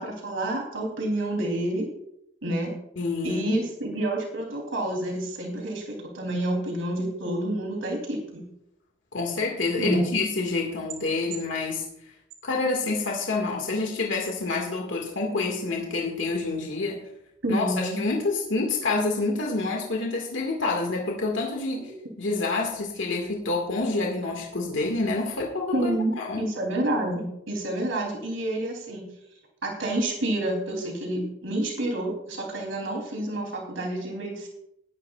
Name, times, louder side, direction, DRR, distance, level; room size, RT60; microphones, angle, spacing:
voice 1, 0.0-1.9 2.4-2.7 3.2-8.4 9.8-10.1 17.4-18.0 25.7-29.1 29.6-34.5, right 1 dB, 90° right, -1 dB, 3.3 m, -29 dB
voice 2, 3.0-3.6 9.1-11.8 12.4-17.0 17.5-21.9 22.2-25.9 26.2-26.5, left 3 dB, 75° left, 0 dB, 2.0 m, -27 dB
19.5 x 11.0 x 2.4 m, 0.80 s
head